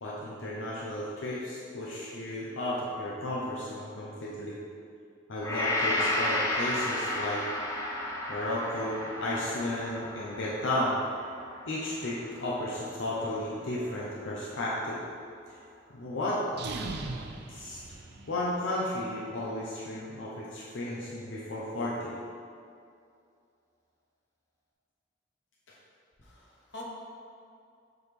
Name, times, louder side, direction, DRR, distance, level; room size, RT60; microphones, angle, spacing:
voice 1, 0.0-4.6 5.3-7.5 8.3-11.0 11.7-15.0 15.9-16.4 17.5-17.8 18.3-22.1, left 1 dB, 85° left, -6 dB, 0.7 m, -33 dB
Gong, 5.4-13.7 14.2-14.4, left 1 dB, 15° left, 0.6 m, -33 dB
sound 1, 16.5-18.6, right 3 dB, 60° right, 0.4 m, -39 dB
voice 2, 26.2-26.8, left 2 dB, 65° left, -3 dB, 1.0 m, -46 dB
7.2 x 4.1 x 3.3 m, 2.4 s
head